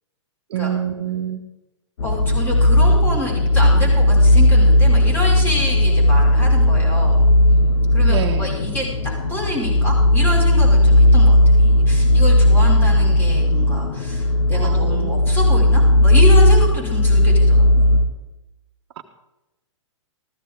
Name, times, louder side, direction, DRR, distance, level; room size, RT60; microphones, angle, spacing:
voice 1, 0.5-1.4 8.1-8.5 14.5-15.2 19.0-19.1, right 9 dB, 55° right, 6 dB, 1.2 m, -27 dB
sound 1, 2.0-18.0, left 1 dB, 70° left, 1.6 m, -15 dB
voice 2, 2.0-7.2 7.9-17.8, left 1 dB, 15° left, -3 dB, 5.7 m, -28 dB
15.0 x 14.0 x 3.8 m, 0.98 s
hypercardioid pair, 120°, 16 cm